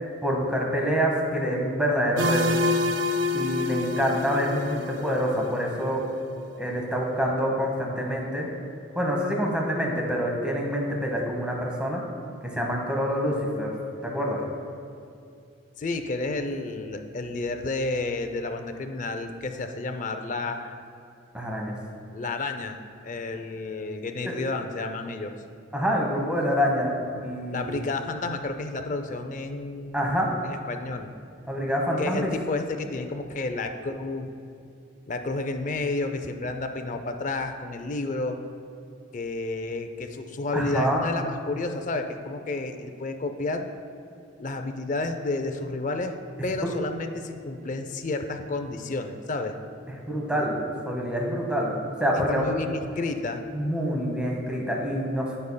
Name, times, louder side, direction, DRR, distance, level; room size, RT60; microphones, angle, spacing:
voice 1, 0.2-2.6 3.3-6.0 6.6-8.5 8.9-12.0 12.4-13.7 14.0-14.5 21.3-21.7 24.2-24.3 25.7-27.7 29.9-30.3 31.5-32.3 40.5-41.0 46.6-46.7 50.1-50.6 50.9-51.7 52.0-52.4 53.5-55.4, equal, 5° right, -1 dB, 1.0 m, -26 dB
sound 1, 2.2-5.9, left 2 dB, 65° right, 0.5 m, -27 dB
voice 2, 15.8-20.8 22.1-25.3 27.5-30.0 30.4-31.1 32.0-34.3 35.1-38.4 39.1-43.6 44.4-46.2 46.4-49.6 50.3-50.4 52.3-53.4, left 2 dB, 40° left, 7 dB, 0.4 m, -31 dB
14.5 x 5.4 x 2.2 m, 2.5 s
head